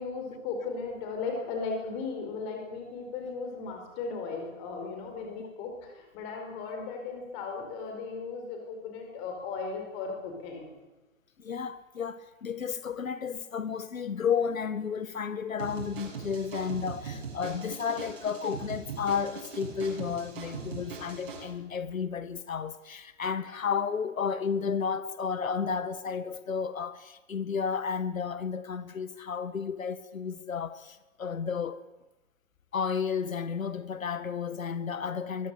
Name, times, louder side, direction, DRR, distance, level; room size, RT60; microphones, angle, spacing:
voice 1, 0.0-10.7, left 4 dB, 15° left, 4.4 m, -36 dB
voice 2, 11.4-31.8 32.7-35.5, left 6 dB, 80° left, 1.9 m, -32 dB
sound 1, 15.6-21.4, right 5 dB, 40° right, 7.7 m, -41 dB
22.5 x 21.5 x 8.2 m
hypercardioid pair, 180°, 40 cm